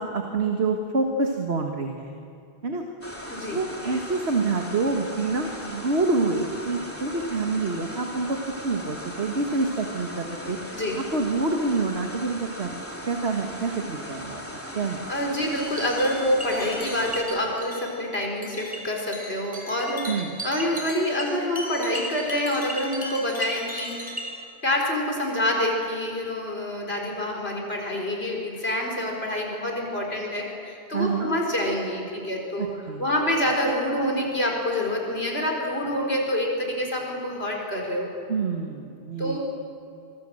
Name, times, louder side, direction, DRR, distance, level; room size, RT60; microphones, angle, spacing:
voice 1, 0.0-2.1 2.6-2.8 3.1-12.7 13.1-14.4 14.8-15.0 20.1-20.3 30.9-31.3 32.6-33.0 38.3-39.4, right 3 dB, 80° right, 3 dB, 1.9 m, -27 dB
sound 1, 3.0-17.2, equal, 10° left, 3.0 m, -38 dB
voice 2, 15.1-24.0 24.6-32.7 33.0-38.1 39.2-39.4, left 1 dB, 70° left, 0 dB, 4.9 m, -27 dB
sound 2, 15.5-24.3, equal, 10° right, 4.2 m, -37 dB
25.0 x 22.5 x 7.8 m, 2.6 s
omnidirectional pair, 1.1 m